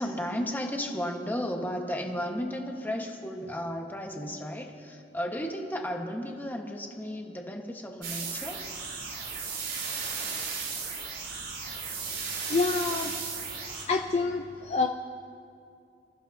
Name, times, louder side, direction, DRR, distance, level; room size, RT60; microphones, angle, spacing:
voice 1, 0.0-8.7, equal, 10° left, 2 dB, 1.2 m, -34 dB
sound 1, 8.0-13.8, right 5 dB, 65° right, 4.3 m, -35 dB
voice 2, 12.5-13.1 13.9-14.9, left 4 dB, 35° left, 4 dB, 0.5 m, -27 dB
29.0 x 14.0 x 2.7 m, 2.4 s
head